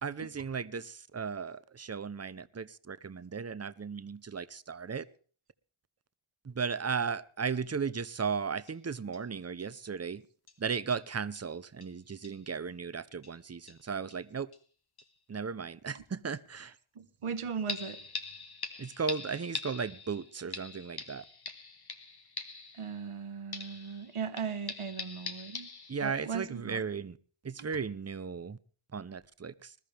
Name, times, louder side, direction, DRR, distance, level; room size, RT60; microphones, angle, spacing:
voice 1, 0.0-5.0 6.4-10.2 10.6-14.5 15.3-16.8 18.8-21.2 25.9-27.2 27.4-28.6 28.9-29.8, right 5 dB, 30° right, 0.7 m, -36 dB
sound 1, 8.2-8.3 8.7-8.8 9.1-9.2 9.6-9.7 10.5-10.6 10.9-11.1 11.4-11.5 11.8-11.9 12.2-12.4 13.2-13.4 13.7-14.2 14.5-14.6 15.0-15.1 17.7-23.2 23.5-26.3 26.7-26.8, left 4 dB, 50° left, 1.6 m, -43 dB
voice 2, 16.6-18.0 22.7-25.7 26.0-26.8 27.6-27.7, right 6 dB, 85° right, 1.3 m, -38 dB
20.5 x 13.5 x 3.4 m
wide cardioid pair, 95°, 50 cm